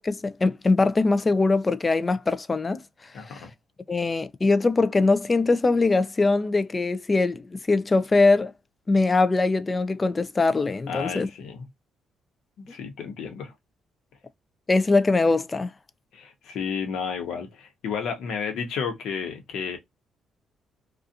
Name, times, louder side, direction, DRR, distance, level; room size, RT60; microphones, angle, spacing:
voice 1, 0.0-2.8 3.3-3.4 3.9-8.5 8.9-11.3 14.7-15.7, left 3 dB, 25° left, 0.3 m, -22 dB
voice 2, 3.1-3.5 10.9-11.7 12.6-13.5 16.1-19.8, left 6 dB, 80° left, 0.9 m, -32 dB
2.6 x 2.4 x 2.4 m
cardioid pair, 90°, 0 cm